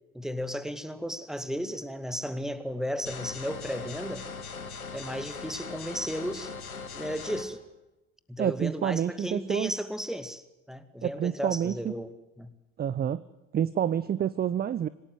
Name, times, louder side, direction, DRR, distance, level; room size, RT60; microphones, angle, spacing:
voice 1, 0.1-4.3 4.9-6.5 6.9-7.6 8.3-12.5, equal, ahead, 13 dB, 2.1 m, -34 dB
sound 1, 3.1-7.4, left 5 dB, 80° left, 2.4 m, -40 dB
voice 2, 8.4-9.7 11.0-12.0 12.8-13.2 13.5-14.9, right 9 dB, 20° right, 18 dB, 0.7 m, -28 dB
27.0 x 18.0 x 7.8 m, 0.99 s
figure-of-eight pair, 65°, 43 cm